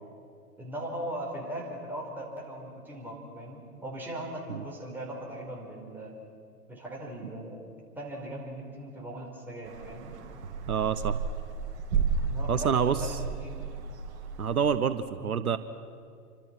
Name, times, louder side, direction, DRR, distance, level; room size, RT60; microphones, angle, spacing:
voice 1, 0.6-6.1 6.7-7.6 7.9-10.2 12.3-13.7 15.2-15.5, right 1 dB, 5° right, -3 dB, 4.9 m, -39 dB
sound 1, 9.7-14.7, right 5 dB, 45° right, 2.5 m, -33 dB
voice 2, 10.7-11.2 12.5-13.0 14.4-15.6, right 7 dB, 70° right, 13 dB, 1.1 m, -27 dB
28.0 x 25.5 x 6.1 m, 2.4 s
figure-of-eight pair, 115°, 46 cm